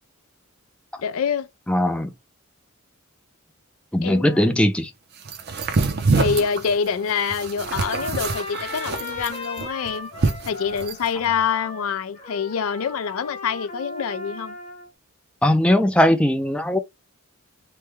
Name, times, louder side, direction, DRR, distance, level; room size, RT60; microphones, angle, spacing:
voice 1, 1.0-1.5 4.0-4.6 6.1-10.1 10.5-14.6, left 6 dB, 75° left, 0.4 m, -26 dB
voice 2, 1.7-2.1 3.9-4.9 15.4-16.8, left 1 dB, 5° left, 0.3 m, -19 dB
sound 1, 5.2-11.1, right 3 dB, 50° right, 0.5 m, -25 dB
Trumpet, 7.5-14.9, left 2 dB, 30° left, 0.9 m, -36 dB
3.2 x 2.1 x 3.1 m
head